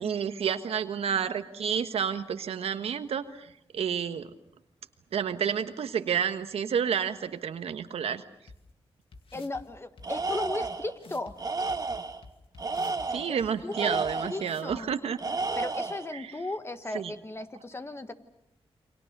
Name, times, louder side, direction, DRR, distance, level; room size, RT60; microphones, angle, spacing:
voice 1, 0.0-4.3 5.1-8.2 13.1-15.2 16.1-16.2 16.9-17.1, right 7 dB, 90° right, 9 dB, 1.4 m, -30 dB
sound 1, 8.5-8.6 9.1-9.6 10.0-10.1 10.6-10.7 11.0-11.3 11.7-13.1 13.4-13.5 14.0-14.1 14.4-14.8, left 3 dB, 65° left, 2.4 m, -48 dB
voice 2, 9.3-11.3 13.3-13.4 13.6-14.9 15.6-18.1, left 2 dB, 25° left, 10 dB, 1.6 m, -36 dB
Tools, 10.0-10.9 11.4-12.2 12.6-14.5 15.2-16.1, right 3 dB, 40° right, 1.7 m, -32 dB
29.0 x 24.0 x 6.7 m, 0.78 s
cardioid pair, 80°, 10 cm